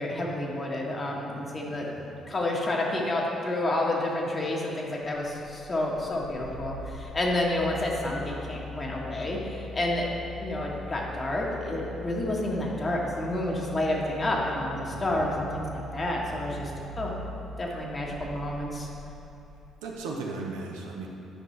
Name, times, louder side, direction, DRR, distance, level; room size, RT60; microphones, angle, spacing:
voice 1, 0.0-10.1 10.4-16.7 17.0-17.1 17.6-18.9, left 1 dB, 35° left, -2 dB, 1.5 m, -29 dB
voice 2, 1.6-2.1 14.9-15.4 16.3-16.9 19.8-21.1, right 3 dB, 80° right, -1 dB, 0.8 m, -38 dB
sound 1, 5.1-19.7, left 1 dB, 80° left, 0.6 m, -43 dB
9.7 x 5.3 x 3.3 m, 2.8 s
hypercardioid pair, 50°, 0 cm